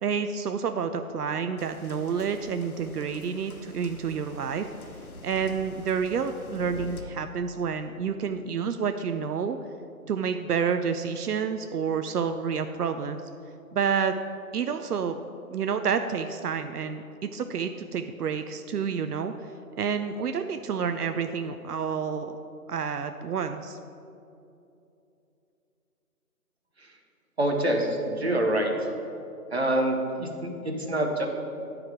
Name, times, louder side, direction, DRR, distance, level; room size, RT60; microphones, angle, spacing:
voice 1, 0.0-4.7 5.2-9.6 10.1-13.2 13.7-14.2 14.5-15.2 15.5-19.3 19.8-22.4 22.7-23.8, right 6 dB, 80° right, 8 dB, 0.5 m, -29 dB
sound 1, 1.6-7.0, left 3 dB, 65° left, 0.9 m, -45 dB
voice 2, 27.4-28.7 29.5-31.3, right 1 dB, 45° right, 2 dB, 0.8 m, -26 dB
9.7 x 4.9 x 4.7 m, 2.7 s
figure-of-eight pair, 180°, 46 cm